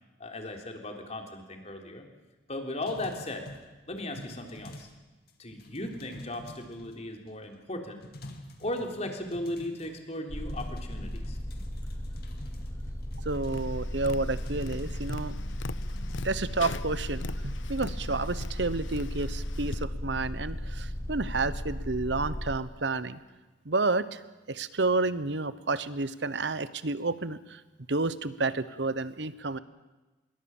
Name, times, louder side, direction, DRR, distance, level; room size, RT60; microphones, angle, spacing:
voice 1, 0.2-2.1 2.5-3.5 3.9-4.9 5.4-8.0 8.6-11.4, left 1 dB, 35° left, 3 dB, 3.5 m, -37 dB
sound 1, 2.8-5.0 5.3-7.3 7.7-7.8 8.0-10.2 10.5-16.2, left 1 dB, 55° left, 2.6 m, -48 dB
sound 2, 10.3-22.6, equal, 15° left, 0.9 m, -36 dB
voice 2, 13.2-15.3 16.2-23.2 23.6-24.2 24.5-27.6 27.9-29.6, right 3 dB, 65° right, 15 dB, 1.1 m, -30 dB
Tap, 13.5-19.8, left 4 dB, 90° left, 0.7 m, -42 dB
26.5 x 22.0 x 7.3 m, 1.1 s
head